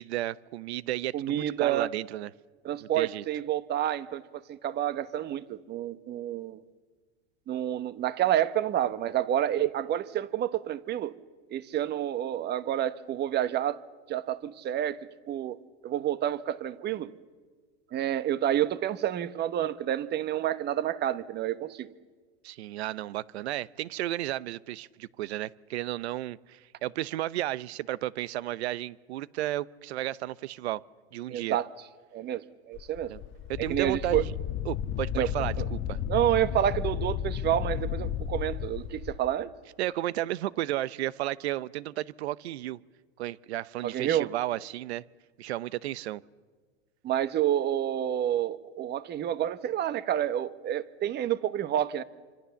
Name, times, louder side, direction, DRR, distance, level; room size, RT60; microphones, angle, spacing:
voice 1, 0.0-2.3 2.8-3.2 22.4-30.8 31.1-31.6 33.1-33.2 33.5-34.3 34.7-36.0 39.8-42.8 43.2-45.0 45.4-46.2, right 15 dB, 75° right, 20 dB, 0.8 m, -33 dB
voice 2, 1.1-1.9 2.6-6.6 7.5-11.1 11.5-13.8 14.1-15.0 15.3-15.6 15.8-17.1 17.9-21.9 31.3-31.7 32.1-33.1 33.7-34.2 35.1-35.3 35.6-35.7 36.1-39.5 43.8-44.3 47.0-52.0, right 11 dB, 30° right, 15 dB, 1.1 m, -29 dB
Wind, 32.7-39.2, left 10 dB, 40° left, 1.2 m, -33 dB
26.5 x 25.5 x 7.1 m, 1.4 s
hypercardioid pair, 115°, 33 cm